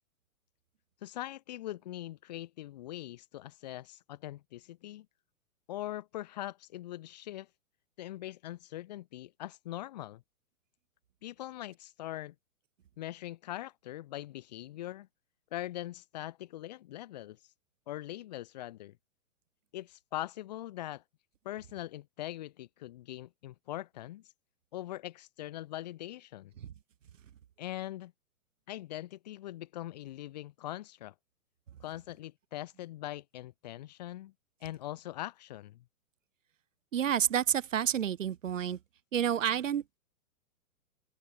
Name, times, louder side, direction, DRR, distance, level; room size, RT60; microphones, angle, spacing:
voice 1, 1.0-5.1 5.7-7.5 8.0-10.2 11.2-12.3 13.0-15.1 15.5-17.4 17.9-19.0 19.7-21.0 21.4-24.2 24.7-26.5 27.6-28.1 28.7-31.1 31.8-34.3 34.6-35.8, left 14 dB, 25° left, 2.2 m, -42 dB
voice 2, 36.9-38.8 39.1-40.0, right 9 dB, 55° right, 2.3 m, -29 dB
open air
hypercardioid pair, 180°, 45 cm